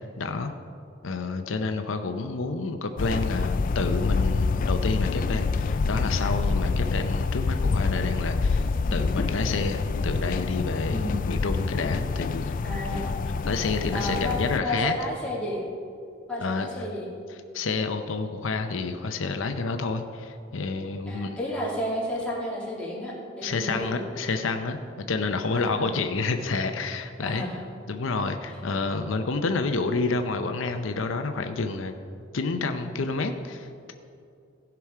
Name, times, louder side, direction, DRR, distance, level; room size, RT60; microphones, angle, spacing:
voice 1, 0.2-0.5 1.0-8.6 8.9-12.4 13.5-14.9 16.4-16.7 17.5-21.3 23.4-24.8 25.1-27.4 27.9-31.9 32.3-33.9, left 3 dB, 85° left, 7 dB, 0.7 m, -29 dB
sound 1, 3.0-14.6, left 4 dB, 45° left, 0.3 m, -26 dB
voice 2, 10.9-11.2 12.6-13.1 13.9-15.6 16.3-17.1 21.1-24.0 25.5-25.9 27.2-27.6, left 1 dB, 5° left, -6 dB, 2.4 m, -32 dB
16.0 x 6.0 x 4.8 m, 2.5 s
head